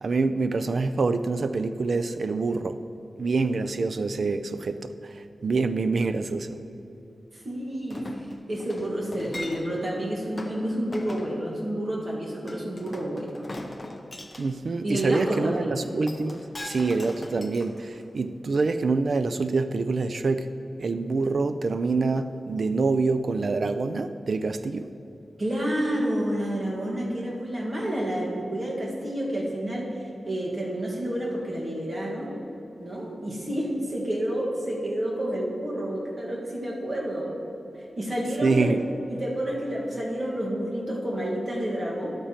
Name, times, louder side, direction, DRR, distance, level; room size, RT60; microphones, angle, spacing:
voice 1, 0.0-2.8 3.2-6.5 14.4-20.5 20.8-24.9 38.4-38.8, right 3 dB, 55° right, 10 dB, 0.4 m, -26 dB
voice 2, 7.4-8.2 8.5-13.4 14.8-15.8 25.4-29.9 30.2-32.3 32.8-37.4 38.0-42.2, right 1 dB, 35° right, -4 dB, 1.6 m, -29 dB
Chink clink, 7.9-9.9 10.4-10.6 10.9-11.3 12.5-14.5 15.8-18.2 18.6-18.7, left 1 dB, 25° left, 0.6 m, -40 dB
11.5 x 8.6 x 2.9 m, 2.9 s
wide cardioid pair, 145°, 0 cm